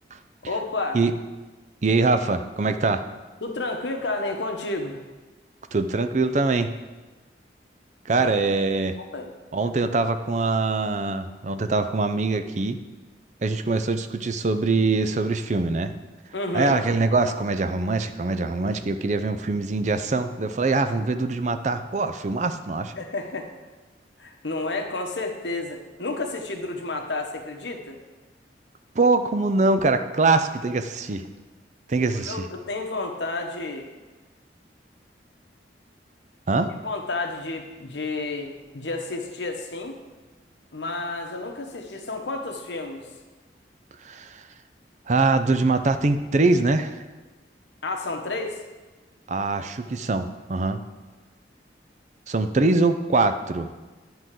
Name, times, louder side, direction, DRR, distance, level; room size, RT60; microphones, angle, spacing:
voice 1, 0.5-1.0 3.4-5.0 8.2-8.3 9.0-9.3 16.3-16.8 23.0-23.5 24.2-28.0 32.3-33.9 36.8-40.0 40.7-43.1 47.8-48.6, left 2 dB, 85° left, 3 dB, 1.1 m, -31 dB
voice 2, 1.8-3.0 5.7-6.7 8.1-8.9 9.5-12.8 13.4-16.0 16.5-22.9 29.0-31.3 31.9-32.5 36.5-36.7 44.0-44.5 45.1-47.0 49.3-50.8 52.3-53.7, right 3 dB, 40° right, 9 dB, 0.5 m, -23 dB
10.5 x 3.8 x 7.5 m, 1.3 s
head